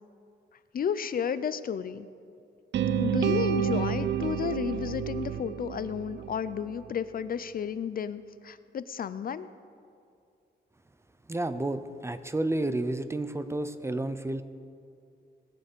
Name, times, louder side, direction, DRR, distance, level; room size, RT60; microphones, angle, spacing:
voice 1, 0.7-2.1 2.9-9.5, left 7 dB, 50° left, 13 dB, 0.5 m, -32 dB
sound 1, 2.7-6.8, right 8 dB, 70° right, 0.6 m, -29 dB
voice 2, 11.3-14.4, right 2 dB, 15° right, 11 dB, 0.6 m, -31 dB
20.5 x 7.0 x 6.8 m, 2.5 s
cardioid pair, 110°, 19 cm